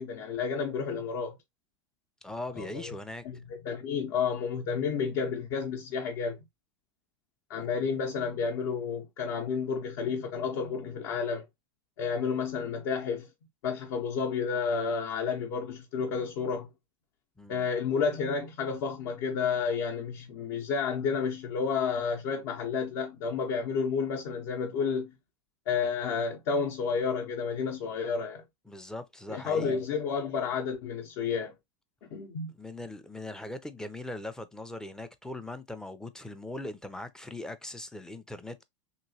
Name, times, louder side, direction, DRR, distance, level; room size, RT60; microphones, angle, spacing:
voice 1, 0.0-1.4 2.6-2.8 3.2-6.4 7.5-11.4 12.0-13.3 13.6-16.7 17.5-25.1 25.7-28.4 29.3-31.5 32.1-32.5, left 5 dB, 60° left, 0.7 m, -31 dB
voice 2, 2.2-3.2 7.6-7.9 17.4-17.7 28.7-29.8 32.5-38.6, left 2 dB, 5° left, 0.4 m, -40 dB
3.0 x 2.9 x 2.7 m
supercardioid pair, 120°, 16 cm